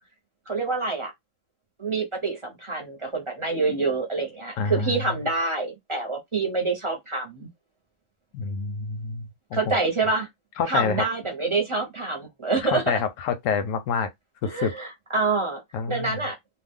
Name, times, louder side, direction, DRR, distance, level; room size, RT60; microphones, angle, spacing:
voice 1, 0.5-1.1 1.8-7.5 9.5-10.3 10.7-12.8 14.4-14.9 15.1-15.6 15.9-16.3, right 3 dB, 30° right, 0.7 m, -26 dB
voice 2, 4.6-5.1 8.3-9.6 10.6-11.0 12.6-14.1 14.4-14.7 15.7-16.2, left 5 dB, 90° left, 1.0 m, -27 dB
2.5 x 2.2 x 3.6 m
omnidirectional pair, 1.3 m